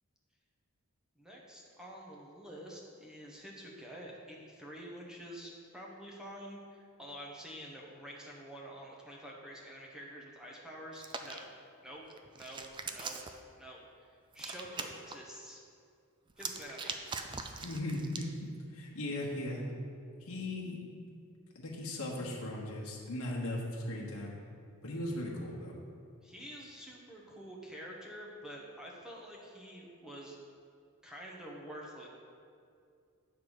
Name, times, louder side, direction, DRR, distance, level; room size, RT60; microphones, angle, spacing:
voice 1, 1.2-11.5 11.8-12.0 12.4-13.2 13.5-15.6 16.4-17.1 26.2-30.4 31.0-32.1, equal, 5° right, -3 dB, 1.0 m, -48 dB
Hands, 10.9-11.4 12.1-13.4 14.3-15.1 16.3-18.3, right 5 dB, 20° right, 0.3 m, -41 dB
voice 2, 17.6-19.6 20.2-20.8 21.5-24.4 24.8-25.7, left 1 dB, 75° left, -3 dB, 1.1 m, -38 dB
9.2 x 3.5 x 6.3 m, 2.4 s
head